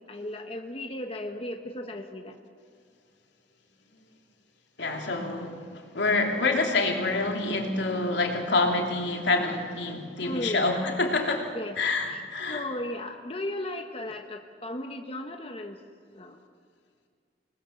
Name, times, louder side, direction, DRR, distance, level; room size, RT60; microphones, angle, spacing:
voice 1, 0.0-2.4 10.2-10.7 11.5-11.8 12.1-12.2 12.5-15.8 16.1-16.4, left 1 dB, 30° left, 4 dB, 1.3 m, -35 dB
voice 2, 4.8-12.7, left 3 dB, 85° left, 2 dB, 2.9 m, -27 dB
27.0 x 20.5 x 7.2 m, 2.1 s
head